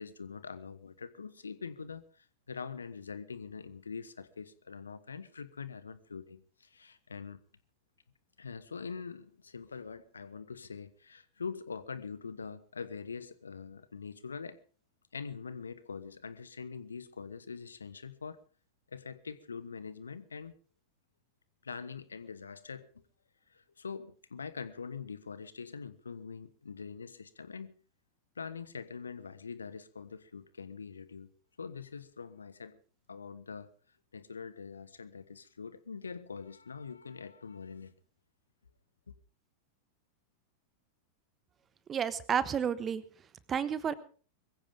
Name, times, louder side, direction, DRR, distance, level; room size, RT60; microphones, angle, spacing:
voice 1, 0.0-7.4 8.4-14.6 15.1-18.4 18.9-20.5 21.6-23.0 23.5-27.7 28.4-31.3 31.6-32.8 33.1-33.7 34.1-37.9 39.1-39.2, left 5 dB, 75° left, 1.2 m, -44 dB
voice 2, 41.9-43.0 43.5-43.9, right 7 dB, 25° right, 1.2 m, -31 dB
22.5 x 15.5 x 3.6 m
figure-of-eight pair, 90°, 0 cm